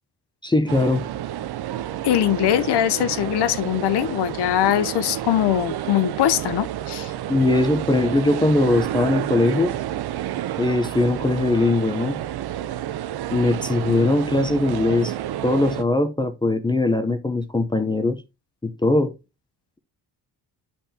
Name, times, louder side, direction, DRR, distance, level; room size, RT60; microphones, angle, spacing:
voice 1, 0.4-1.0 7.3-9.7 10.6-12.2 13.3-15.1 15.4-18.2 18.6-19.1, left 2 dB, 10° left, 0.7 m, -20 dB
sound 1, 0.7-15.8, right 12 dB, 70° right, 0.7 m, -30 dB
voice 2, 2.0-7.1, left 12 dB, 80° left, 0.8 m, -21 dB
10.5 x 5.6 x 2.8 m
wide cardioid pair, 155°, 40 cm